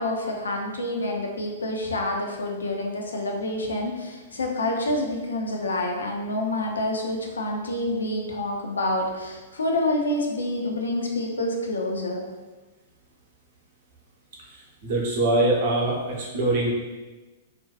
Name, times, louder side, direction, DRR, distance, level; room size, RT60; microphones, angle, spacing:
voice 1, 0.0-12.2, left 1 dB, 75° left, 0 dB, 0.4 m, -27 dB
voice 2, 14.4-16.7, right 2 dB, 50° right, -3 dB, 0.7 m, -24 dB
2.5 x 2.2 x 2.4 m, 1.2 s
figure-of-eight pair, 105°, 0 cm